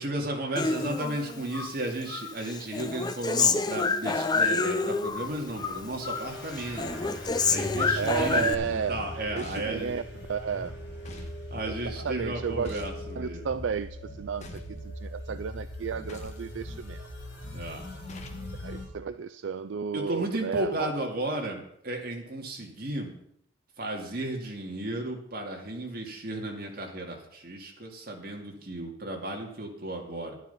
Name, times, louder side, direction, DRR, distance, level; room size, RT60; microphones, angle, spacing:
voice 1, 0.0-6.9 7.4-9.9 11.2-13.5 17.5-17.9 19.9-23.1 23.8-30.3, right 1 dB, 50° right, 1 dB, 2.3 m, -34 dB
Human voice, 0.6-1.7 2.1-5.3 5.6-6.3 6.6-8.5, left 4 dB, 20° left, 0.6 m, -28 dB
sound 1, 5.1-18.9, left 1 dB, 60° left, 4.5 m, -40 dB
voice 2, 7.9-10.0 10.3-10.8 11.7-12.8 13.2-17.1 18.6-20.9, right 6 dB, 75° right, 12 dB, 0.4 m, -33 dB
sound 2, 9.4-9.8 11.0-11.4 12.6-13.0 14.4-14.8 16.1-16.5 18.1-18.5, left 2 dB, 35° left, 1.3 m, -45 dB
11.5 x 9.4 x 5.5 m, 0.71 s
head